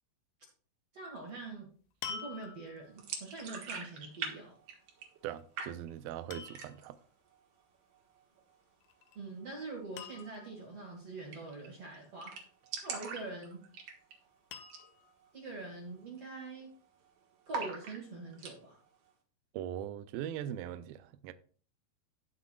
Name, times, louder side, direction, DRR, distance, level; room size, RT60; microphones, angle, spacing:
voice 1, 0.9-1.7 2.1-4.6 9.2-12.3 12.8-13.6 15.3-16.7 17.5-18.8, right 3 dB, 45° right, 2.4 m, -44 dB
sound 1, 1.1-1.3 2.0-2.9 5.3-5.7 6.3-6.8 8.8-9.2 9.5-9.6 10.0-10.6 12.9-13.5 14.5-15.1 15.9-16.0, left 6 dB, 85° left, 2.9 m, -46 dB
sound 2, 3.0-4.3 4.6-5.3 5.6-6.1 6.5-7.0 7.3-7.4 7.7-8.4 10.1-10.2 10.5-10.6 10.9-11.0 11.3-11.7 11.9-12.0 12.2-14.3 14.6-14.9 15.2-15.3 15.9-16.2 16.4-17.0 17.5-18.6, right 5 dB, 60° right, 2.9 m, -42 dB
voice 2, 5.2-7.0 19.5-21.3, right 11 dB, 80° right, 2.2 m, -40 dB
17.5 x 6.1 x 2.4 m
omnidirectional pair, 4.6 m